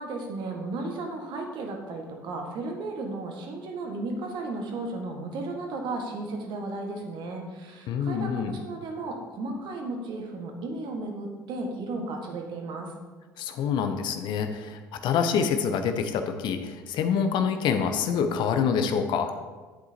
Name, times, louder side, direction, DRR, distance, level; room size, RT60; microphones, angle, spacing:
voice 1, 0.0-12.9, right 2 dB, 50° right, 2 dB, 1.6 m, -34 dB
voice 2, 7.9-8.5 13.4-19.3, left 7 dB, 55° left, 7 dB, 0.7 m, -26 dB
10.0 x 8.2 x 2.8 m, 1.3 s
figure-of-eight pair, 60°, 10 cm